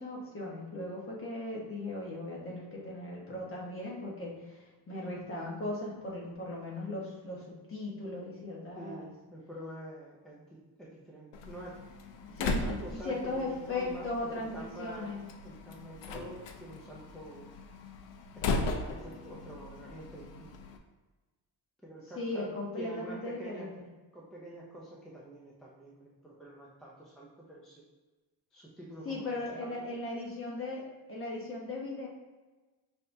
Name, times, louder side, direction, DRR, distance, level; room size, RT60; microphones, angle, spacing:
voice 1, 0.0-9.1 12.3-15.2 22.2-23.9 29.0-30.8 31.1-32.1, left 2 dB, 30° left, -3 dB, 1.1 m, -38 dB
voice 2, 8.8-11.8 12.4-15.1 15.4-17.5 18.4-20.5 21.8-22.5 22.8-23.7 24.1-27.8 28.5-29.7, right 1 dB, ahead, -5 dB, 0.4 m, -47 dB
Slam, 11.3-20.8, left 3 dB, 80° left, 0.6 m, -38 dB
5.5 x 3.5 x 2.6 m, 1.2 s
wide cardioid pair, 175°, 44 cm